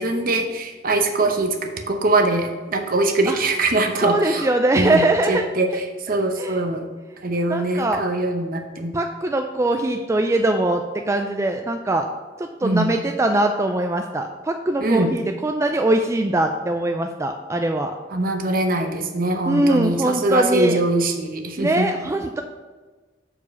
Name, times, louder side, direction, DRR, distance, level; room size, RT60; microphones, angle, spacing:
voice 1, 0.0-4.5 4.7-6.9 7.2-8.9 12.6-12.9 14.8-15.1 18.1-21.9, right 2 dB, 50° right, 5 dB, 0.8 m, -22 dB
voice 2, 4.0-5.4 6.4-6.6 7.5-8.0 8.9-12.1 12.4-17.9 19.5-20.8 21.6-22.4, right 2 dB, 15° right, 4 dB, 0.3 m, -22 dB
7.1 x 4.9 x 5.2 m, 1.3 s
head